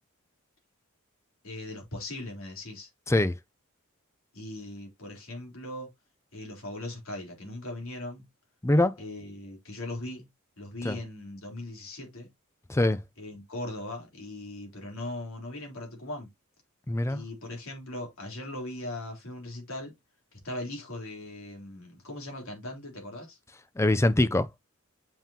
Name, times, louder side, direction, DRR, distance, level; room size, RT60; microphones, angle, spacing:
voice 1, 1.4-2.9 4.3-5.9 6.3-8.3 9.0-10.3 10.6-12.3 13.2-16.3 17.1-19.9 20.4-23.4, left 1 dB, 65° left, 3.5 m, -39 dB
voice 2, 8.6-9.0 10.8-11.0 12.7-13.0 16.9-17.2 23.8-24.5, left 1 dB, 15° left, 0.5 m, -23 dB
7.4 x 5.5 x 2.8 m
head